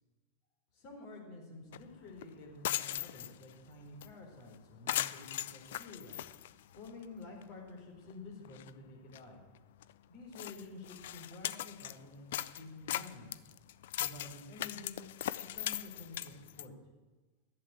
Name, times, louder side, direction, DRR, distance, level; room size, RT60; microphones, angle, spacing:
voice 1, 0.7-6.1 6.7-9.4 10.1-13.5 14.0-15.1 15.5-16.7, left 2 dB, 50° left, 0 dB, 4.1 m, -50 dB
sound 1, 1.7-1.8 2.2-2.3 2.5-3.5 4.0-4.1 4.4-4.5 4.9-7.0 7.4-7.5 8.1-8.2 8.4-8.7 9.1-9.2 9.8-9.9 10.3-12.0 12.3-16.7, left 13 dB, 65° left, 0.4 m, -39 dB
11.5 x 7.5 x 8.2 m, 1.2 s
hypercardioid pair, 95°, 0 cm